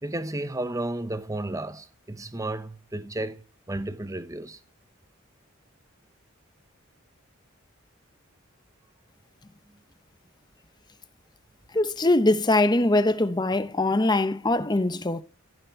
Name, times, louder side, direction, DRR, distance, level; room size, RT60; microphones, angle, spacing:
voice 1, 0.0-4.6, right 1 dB, 15° right, 0.9 m, -33 dB
voice 2, 11.7-15.2, left 2 dB, 20° left, 0.9 m, -22 dB
15.0 x 7.1 x 9.2 m
head